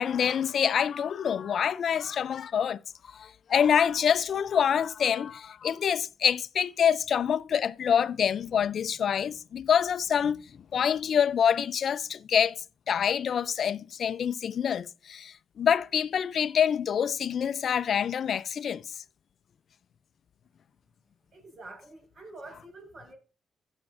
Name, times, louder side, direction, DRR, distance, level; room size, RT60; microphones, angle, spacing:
voice 1, 0.0-2.8 3.1-10.4 10.7-12.6 12.9-18.8, left 8 dB, 65° left, 0.4 m, -26 dB
voice 2, 21.3-23.2, right 2 dB, 50° right, 5.2 m, -47 dB
16.0 x 5.8 x 2.5 m
supercardioid pair, 50°, 0 cm